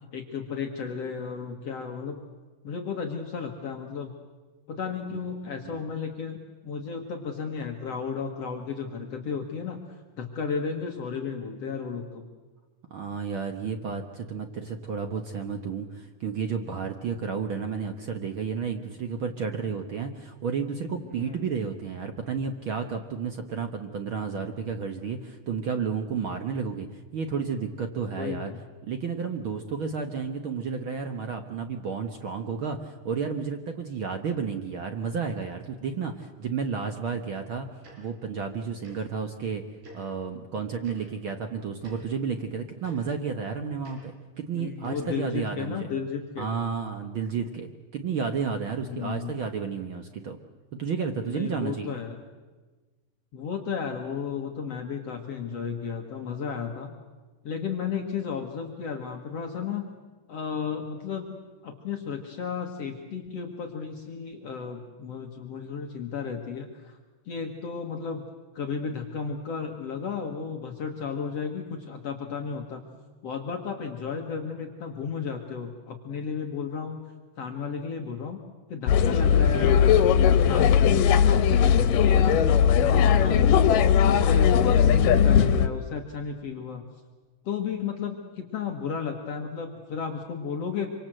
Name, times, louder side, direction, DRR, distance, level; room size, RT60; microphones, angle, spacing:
voice 1, 0.1-2.2 2.6-4.1 4.7-12.3 21.2-21.4 28.1-28.6 44.5-46.5 48.8-49.4 51.1-52.2 53.3-56.9 57.4-59.9 60.3-61.3 61.6-67.0 67.3-68.2 68.5-72.8 73.2-77.0 77.4-78.4 78.7-79.9 80.1-82.4 82.7-83.6 84.0-86.9 87.4-90.9, left 6 dB, 55° left, 3 dB, 2.5 m, -34 dB
voice 2, 12.9-28.5 28.8-37.7 38.0-39.6 39.9-44.1 44.4-45.9 46.4-50.4 50.7-52.0 79.1-79.5, right 6 dB, 55° right, 6 dB, 1.5 m, -32 dB
Tick-tock, 37.8-38.0 38.8-39.0 39.8-40.0 40.8-41.0 41.8-42.0 42.8-42.9 43.8-44.0 44.8-45.0, right 1 dB, 75° right, 7.5 m, -47 dB
sound 1, 78.9-85.7, left 8 dB, 90° left, 2.7 m, -19 dB
26.0 x 25.0 x 7.8 m, 1.3 s
omnidirectional pair, 3.7 m